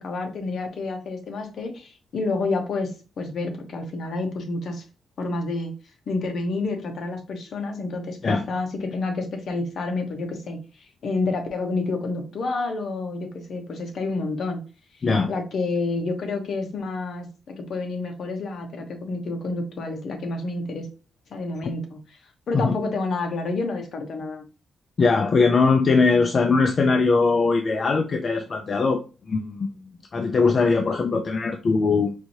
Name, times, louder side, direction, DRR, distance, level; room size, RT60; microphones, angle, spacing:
voice 1, 0.0-4.8 5.2-5.7 6.1-14.6 15.3-20.9 21.3-22.0 22.5-24.4, left 3 dB, 60° left, 1.0 m, -29 dB
voice 2, 25.0-29.7 30.1-32.1, left 4 dB, 40° left, 0.4 m, -21 dB
4.8 x 2.7 x 2.9 m
cardioid pair, 125°, 0 cm